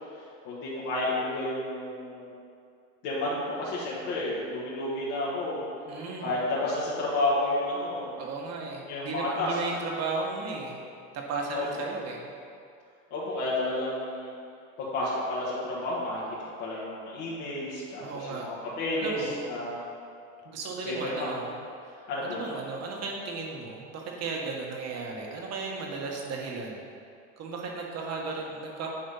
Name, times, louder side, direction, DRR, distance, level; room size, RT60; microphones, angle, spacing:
voice 1, 0.5-2.3 3.0-5.6 6.2-8.1 8.9-9.6 11.5-11.6 13.1-14.3 14.8-19.2 19.5-19.8 20.9-21.3 22.1-22.4, left 2 dB, 70° left, -8 dB, 1.8 m, -31 dB
voice 2, 5.8-6.4 8.2-10.8 11.1-12.3 18.0-18.5 19.0-19.4 20.4-21.5 21.8-26.9 27.4-28.9, right 4 dB, 45° right, 0 dB, 1.5 m, -35 dB
9.3 x 3.4 x 5.7 m, 2.4 s
supercardioid pair, 105°, 37 cm